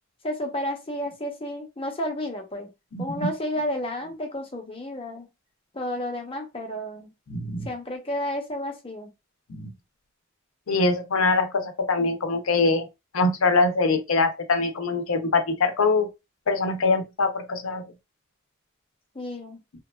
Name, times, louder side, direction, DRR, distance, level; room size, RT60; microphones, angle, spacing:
voice 1, 0.2-2.7 3.0-5.3 5.7-7.1 7.6-9.1 19.1-19.6, left 1 dB, 25° left, 0.7 m, -31 dB
voice 2, 2.9-3.3 7.3-7.7 9.5-9.7 10.7-12.9 13.1-16.1 16.5-17.8, left 3 dB, 80° left, 0.6 m, -23 dB
2.9 x 2.3 x 2.2 m
head